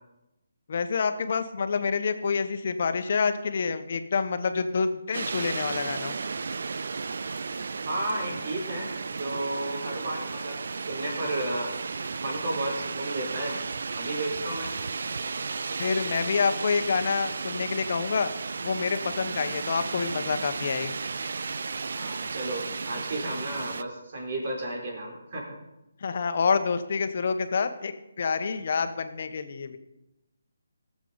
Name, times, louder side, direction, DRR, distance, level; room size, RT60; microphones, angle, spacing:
voice 1, 0.7-6.1 15.8-18.3 18.6-21.0 26.0-29.8, left 5 dB, 50° left, 9 dB, 1.0 m, -27 dB
sound 1, 5.1-23.8, right 4 dB, 65° right, 0.4 m, -34 dB
voice 2, 7.9-11.7 12.0-13.6 13.9-14.7 21.9-25.6, right 1 dB, 50° right, -1 dB, 4.0 m, -33 dB
18.0 x 7.4 x 4.0 m, 0.92 s
figure-of-eight pair, 155°, 0 cm